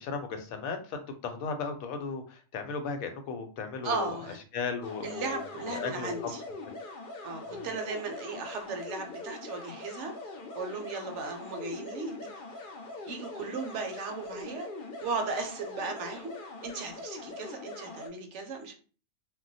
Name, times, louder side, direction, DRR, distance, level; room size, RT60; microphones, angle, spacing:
voice 1, 0.0-4.1 4.5-6.1 7.5-7.7, left 5 dB, 90° left, 6 dB, 1.1 m, -36 dB
voice 2, 3.8-4.4 5.0-6.4 7.2-10.1 10.5-12.3 13.1-14.7 15.0-16.4 16.6-18.7, right 4 dB, 65° right, 4 dB, 0.9 m, -36 dB
sound 1, 4.8-18.1, left 2 dB, 55° left, 0.6 m, -42 dB
2.3 x 2.1 x 3.9 m, 0.38 s
omnidirectional pair, 1.4 m